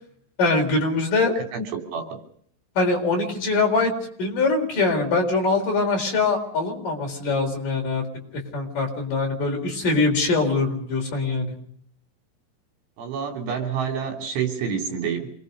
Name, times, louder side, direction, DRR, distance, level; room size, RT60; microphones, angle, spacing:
voice 1, 0.4-1.3 2.8-3.9 4.2-8.0 8.5-11.5, left 3 dB, 45° left, 2 dB, 5.4 m, -23 dB
voice 2, 1.4-1.7 1.9-2.1 13.0-15.3, right 6 dB, 75° right, 3 dB, 5.7 m, -28 dB
27.0 x 21.0 x 5.4 m, 0.64 s
omnidirectional pair, 5.5 m